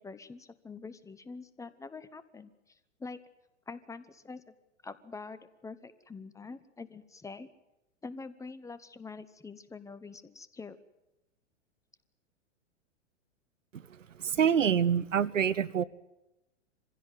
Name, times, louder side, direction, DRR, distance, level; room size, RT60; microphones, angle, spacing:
voice 1, 0.0-3.2 3.7-4.5 4.8-7.5 8.0-10.8, left 4 dB, 10° left, 14 dB, 0.9 m, -45 dB
voice 2, 14.2-15.8, right 8 dB, 90° right, 20 dB, 0.8 m, -26 dB
24.5 x 16.0 x 9.2 m, 0.97 s
hypercardioid pair, 115°, 37 cm